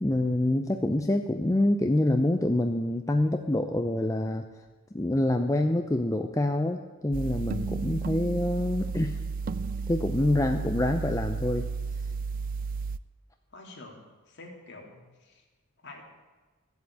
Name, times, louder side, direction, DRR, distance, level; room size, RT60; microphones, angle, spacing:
voice 1, 0.0-4.4 4.9-9.2 9.9-11.7, left 1 dB, 15° left, 5 dB, 0.5 m, -26 dB
sound 1, 7.1-13.0, right 4 dB, 40° right, 0.3 m, -33 dB
voice 2, 13.5-15.4 15.8-16.0, left 2 dB, 55° left, 0 dB, 2.8 m, -47 dB
14.0 x 8.1 x 8.4 m, 1.3 s
head